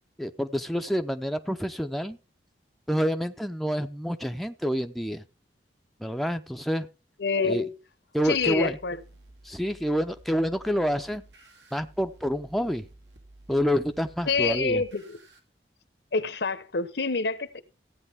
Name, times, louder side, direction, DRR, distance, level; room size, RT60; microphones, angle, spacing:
voice 1, 0.2-2.2 2.9-5.2 6.0-6.9 7.4-7.6 8.1-8.8 9.4-11.2 11.7-12.9 13.5-14.8, equal, ahead, 0.5 m, -28 dB
voice 2, 7.2-7.7 8.2-9.0 14.3-15.2 16.1-17.6, left 4 dB, 75° left, 1.0 m, -27 dB
sound 1, 8.2-15.4, right 2 dB, 85° right, 2.3 m, -53 dB
15.5 x 8.8 x 3.6 m
head